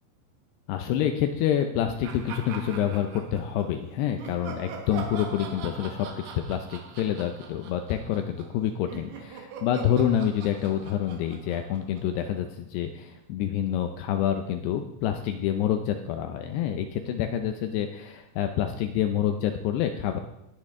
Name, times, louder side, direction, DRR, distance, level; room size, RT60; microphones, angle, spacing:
voice 1, 0.7-20.2, left 10 dB, 80° left, 6 dB, 2.6 m, -27 dB
sound 1, 2.0-3.7 4.2-12.5, right 6 dB, 70° right, 3.1 m, -42 dB
19.5 x 8.6 x 3.7 m, 0.86 s
omnidirectional pair, 5.1 m